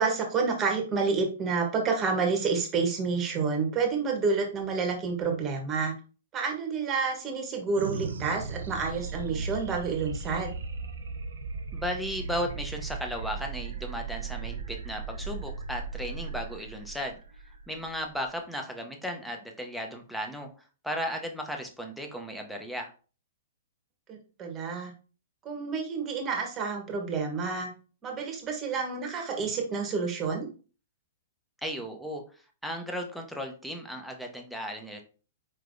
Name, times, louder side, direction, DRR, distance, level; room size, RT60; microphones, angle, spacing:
voice 1, 0.0-5.9 6.3-10.5 24.1-24.9 25.4-27.7 28.0-30.5, right 4 dB, 25° right, 2 dB, 1.1 m, -29 dB
sound 1, 7.7-18.4, right 5 dB, 85° right, 0.5 m, -37 dB
voice 2, 11.7-17.2 17.4-22.9 31.6-35.0, equal, ahead, 2 dB, 0.7 m, -35 dB
4.6 x 3.2 x 2.6 m, 0.36 s
hypercardioid pair, 140°, 0 cm